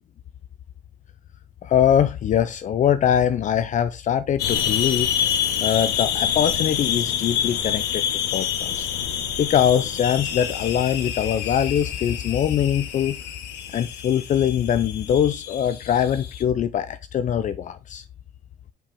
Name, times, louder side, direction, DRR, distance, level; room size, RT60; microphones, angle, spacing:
voice 1, 1.6-5.1 5.6-8.0 8.3-8.9 9.4-13.2 13.7-18.0, left 9 dB, 50° left, 0.5 m, -22 dB
sound 1, 4.4-16.4, left 9 dB, 80° left, 1.3 m, -27 dB
5.7 x 4.8 x 3.5 m
cardioid pair, 110°, 17 cm